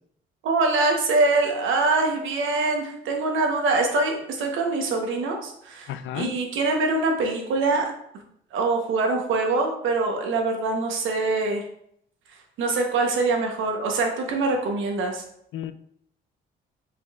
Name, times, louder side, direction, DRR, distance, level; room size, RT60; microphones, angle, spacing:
voice 1, 0.4-5.9 6.1-7.9 8.5-11.6 12.6-15.2, right 3 dB, 80° right, 3 dB, 1.0 m, -24 dB
voice 2, 5.9-6.3 15.5-15.7, left 10 dB, 75° left, 11 dB, 0.4 m, -32 dB
5.7 x 3.7 x 2.4 m, 0.71 s
cardioid pair, 90°, 20 cm